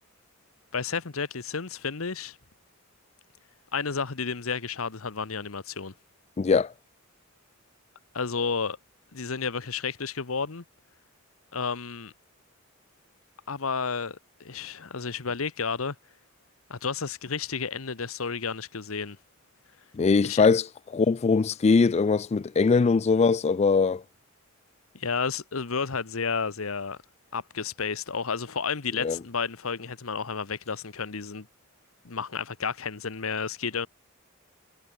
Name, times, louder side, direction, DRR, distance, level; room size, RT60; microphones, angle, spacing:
voice 1, 0.7-2.4 3.7-5.9 8.1-8.8 9.1-10.6 11.5-12.1 13.5-15.9 16.7-19.2 20.2-20.5 24.9-27.0 27.3-31.5 32.0-33.9, left 5 dB, 80° left, 1.1 m, -31 dB
voice 2, 6.4-6.7 19.9-24.0 29.0-29.2, left 4 dB, 30° left, 0.3 m, -22 dB
head